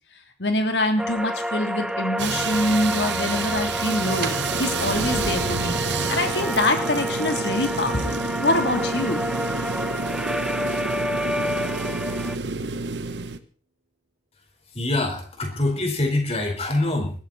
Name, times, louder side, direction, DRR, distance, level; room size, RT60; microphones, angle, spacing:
voice 1, 0.4-4.3 4.6-9.3, left 1 dB, 75° left, 5 dB, 3.2 m, -25 dB
sound 1, 1.0-12.4, equal, 5° right, 0.8 m, -29 dB
sound 2, 2.2-13.4, right 4 dB, 80° right, 1.2 m, -29 dB
sound 3, 4.2-10.0, right 1 dB, 60° right, 2.9 m, -35 dB
voice 2, 14.7-17.1, left 2 dB, 35° left, 4 dB, 4.6 m, -24 dB
20.5 x 14.5 x 4.2 m, 0.38 s
head